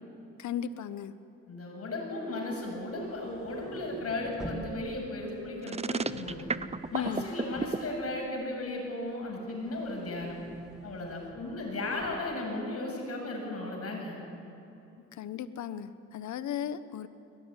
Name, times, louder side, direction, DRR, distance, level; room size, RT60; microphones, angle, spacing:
voice 1, 0.4-1.1 6.9-7.3 15.2-17.1, left 9 dB, 70° left, 13 dB, 1.2 m, -35 dB
voice 2, 1.5-6.5 6.9-10.4 10.8-14.2, left 2 dB, 50° left, 1 dB, 7.9 m, -35 dB
sound 1, 2.7-8.7 9.1-12.4, equal, ahead, 1.9 m, -48 dB
sound 2, 5.6-7.8, right 4 dB, 20° right, 0.8 m, -31 dB
23.0 x 18.0 x 10.0 m, 2.9 s
cardioid pair, 90°, 30 cm